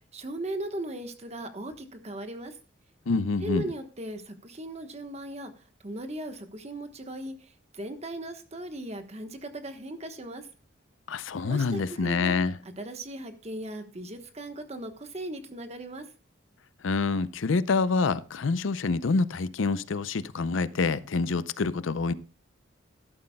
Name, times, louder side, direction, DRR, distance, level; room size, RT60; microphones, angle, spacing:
voice 1, 0.1-2.6 3.4-10.5 11.4-12.4 12.8-16.0, right 1 dB, 35° right, 1.2 m, -38 dB
voice 2, 3.1-3.6 11.1-12.5 16.8-22.1, left 4 dB, 75° left, 0.5 m, -27 dB
12.5 x 11.5 x 2.2 m
head